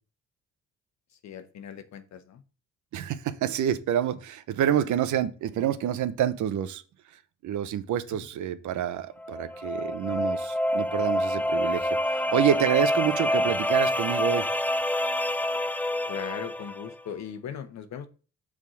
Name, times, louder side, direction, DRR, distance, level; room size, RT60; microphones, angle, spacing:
voice 1, 1.1-2.4 4.7-4.9 8.1-8.2 16.1-18.1, left 8 dB, 65° left, 10 dB, 1.1 m, -39 dB
voice 2, 2.9-6.8 7.4-14.4, right 10 dB, 75° right, 12 dB, 0.8 m, -28 dB
sound 1, 9.2-16.9, left 1 dB, 5° left, 0.4 m, -27 dB
6.5 x 3.6 x 6.1 m, 0.35 s
cardioid pair, 90°, 30 cm